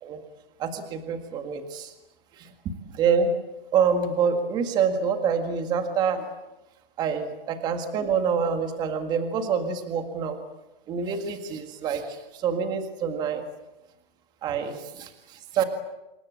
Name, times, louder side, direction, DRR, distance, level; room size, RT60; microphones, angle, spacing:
voice 1, 0.6-1.9 2.4-3.3 3.7-6.3 7.0-10.4 10.9-13.5 14.4-15.6, right 6 dB, 15° right, 7 dB, 1.9 m, -26 dB
27.0 x 21.5 x 8.6 m, 0.97 s
hypercardioid pair, 165°, 29 cm